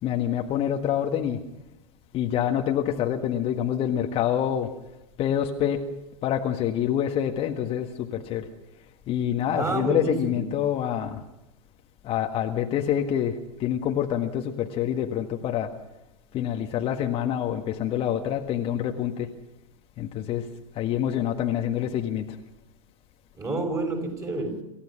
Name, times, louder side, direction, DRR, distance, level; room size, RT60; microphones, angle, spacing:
voice 1, 0.0-1.4 2.1-4.7 5.2-5.8 6.2-8.5 9.1-11.2 12.0-15.7 16.3-19.3 20.0-20.4 20.7-22.2, left 10 dB, 35° left, 3 dB, 1.6 m, -26 dB
voice 2, 9.5-10.5 23.4-24.6, right 2 dB, 20° right, 3 dB, 6.2 m, -29 dB
28.0 x 15.5 x 6.2 m, 0.92 s
figure-of-eight pair, 95°, 18 cm